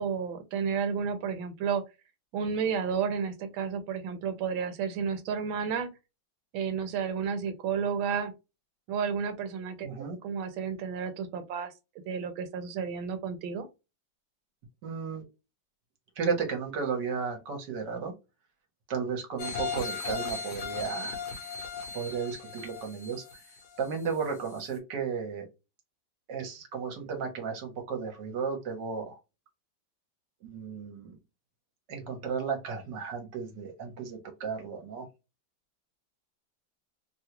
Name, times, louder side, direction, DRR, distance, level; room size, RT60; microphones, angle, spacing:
voice 1, 0.0-1.8 2.3-5.9 6.5-8.3 8.9-9.9 10.2-11.7 12.1-13.7, right 6 dB, 80° right, 1.5 m, -31 dB
voice 2, 9.8-10.2 14.8-15.2 16.2-18.1 18.9-21.2 21.9-23.4 23.8-25.5 26.3-29.2 30.4-31.2 31.9-35.1, right 5 dB, 65° right, 1.5 m, -34 dB
sound 1, 19.4-24.1 24.6-24.7, left 5 dB, 60° left, 1.3 m, -37 dB
3.5 x 2.3 x 2.9 m
omnidirectional pair, 2.1 m